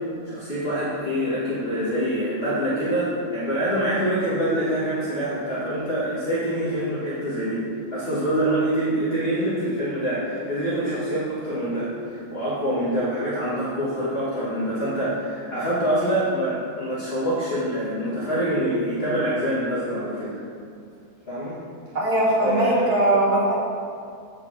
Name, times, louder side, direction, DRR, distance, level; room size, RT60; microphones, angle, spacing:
voice 1, 0.3-7.6 7.9-20.4 21.3-21.5 22.4-22.9, right 1 dB, 40° left, -10 dB, 2.0 m, -25 dB
voice 2, 21.9-23.6, right 1 dB, 90° right, -6 dB, 2.6 m, -20 dB
8.1 x 5.5 x 6.0 m, 2.3 s
omnidirectional pair, 1.6 m